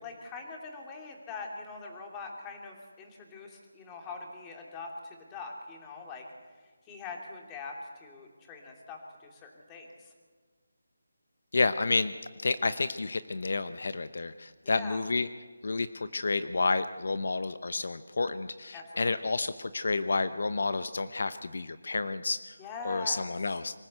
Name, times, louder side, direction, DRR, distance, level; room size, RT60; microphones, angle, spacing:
voice 1, 0.0-6.2 6.9-10.1 14.6-15.0 18.7-19.3 22.6-23.3, left 4 dB, 15° left, 1 dB, 3.0 m, -43 dB
voice 2, 11.5-12.1 12.4-15.3 15.6-22.5 22.8-23.8, left 3 dB, 65° left, 12 dB, 0.9 m, -30 dB
25.0 x 15.0 x 8.1 m, 1.5 s
figure-of-eight pair, 165°, 0 cm